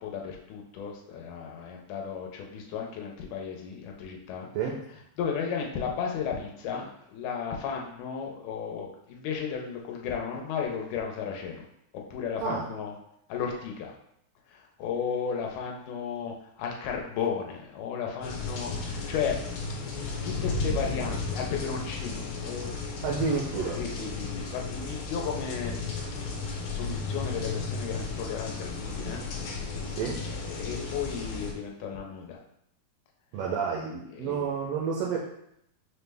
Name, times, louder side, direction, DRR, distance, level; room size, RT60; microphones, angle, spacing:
voice 1, 0.0-4.5 5.2-11.7 12.1-12.9 13.3-13.9 14.5-19.4 20.2-22.8 23.8-25.7 26.6-29.2 30.3-32.4 34.1-34.5, left 7 dB, 90° left, 1 dB, 2.1 m, -34 dB
voice 2, 4.5-4.8 12.4-12.7 23.0-23.8 29.9-30.3 33.3-35.2, right 5 dB, 85° right, -2 dB, 1.4 m, -30 dB
sound 1, 18.2-31.5, left 3 dB, 75° left, 1.8 m, -34 dB
5.5 x 2.1 x 3.3 m, 0.76 s
omnidirectional pair, 3.4 m